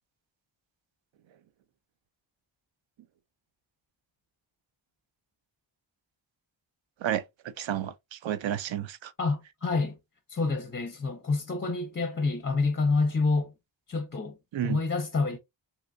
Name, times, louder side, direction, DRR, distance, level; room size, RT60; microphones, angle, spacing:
voice 1, 7.6-9.1 14.5-14.8, right 10 dB, 80° right, 0.5 m, -31 dB
voice 2, 9.2-10.0 10.3-13.5 13.9-14.4 14.6-15.4, left 3 dB, 25° left, 0.5 m, -28 dB
3.1 x 2.9 x 2.5 m
wide cardioid pair, 120°, 45 cm